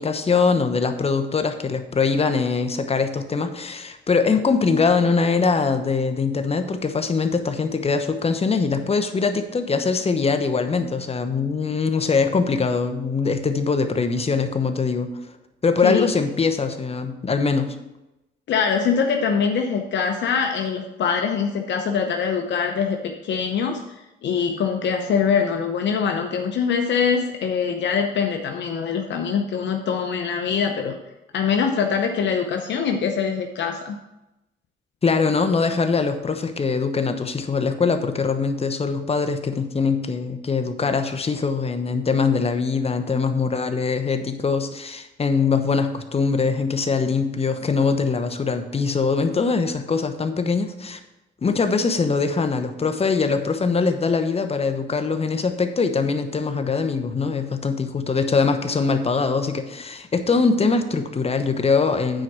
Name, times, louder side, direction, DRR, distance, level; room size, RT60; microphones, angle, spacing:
voice 1, 0.0-15.1 15.6-17.8 35.0-51.0 51.4-62.2, left 4 dB, 30° left, 8 dB, 1.0 m, -22 dB
voice 2, 18.5-23.8 24.2-31.0 31.3-34.0, left 6 dB, 65° left, 3 dB, 0.8 m, -23 dB
9.0 x 4.7 x 6.1 m, 0.95 s
cardioid pair, 90°, 20 cm